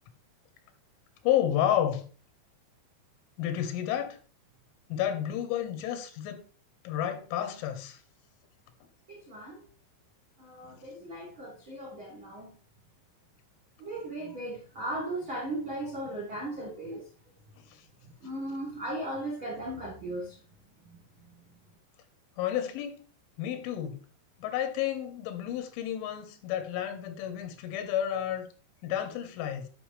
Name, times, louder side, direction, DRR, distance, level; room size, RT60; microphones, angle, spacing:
voice 1, 1.2-2.1 3.4-4.2 4.9-6.4 6.9-8.0 17.7-17.8 22.4-23.0 23.4-24.0 24.4-28.5 28.8-29.7, left 10 dB, 90° left, 3.6 m, -31 dB
voice 2, 9.1-9.6 10.4-12.6 13.8-17.1 18.0-20.4 20.8-21.3, right 1 dB, 65° right, 1.2 m, -37 dB
11.0 x 5.8 x 3.3 m
omnidirectional pair, 5.4 m